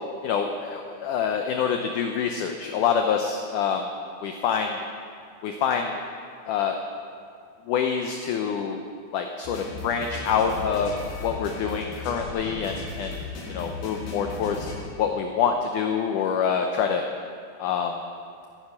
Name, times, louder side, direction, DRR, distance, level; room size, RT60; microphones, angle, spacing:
voice 1, 0.2-3.9 4.2-4.8 5.4-5.9 6.5-6.8 7.7-8.8 9.1-10.9 11.2-13.2 13.5-14.6 15.0-17.0 17.6-18.0, left 7 dB, 90° left, 4 dB, 1.8 m, -26 dB
sound 1, 9.4-14.8, left 3 dB, 75° left, 3.9 m, -36 dB
15.0 x 9.0 x 5.7 m, 2.3 s
omnidirectional pair, 4.5 m